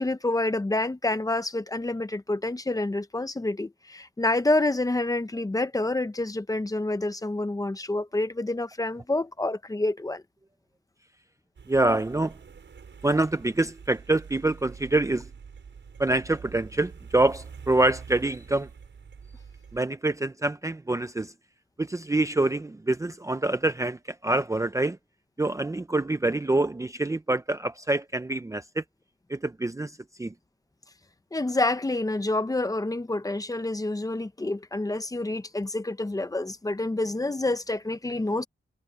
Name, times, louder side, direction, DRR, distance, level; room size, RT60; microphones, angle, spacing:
voice 1, 0.0-10.2 31.3-38.4, left 2 dB, 15° left, 0.8 m, -28 dB
sound 1, 11.6-19.8, right 6 dB, 60° right, 6.3 m, -46 dB
voice 2, 11.7-12.3 13.0-15.3 16.0-18.7 19.7-21.3 21.8-25.0 25.4-28.8 29.3-29.9 30.2-30.3, right 2 dB, 15° right, 0.6 m, -26 dB
wide cardioid pair, 165°, 21 cm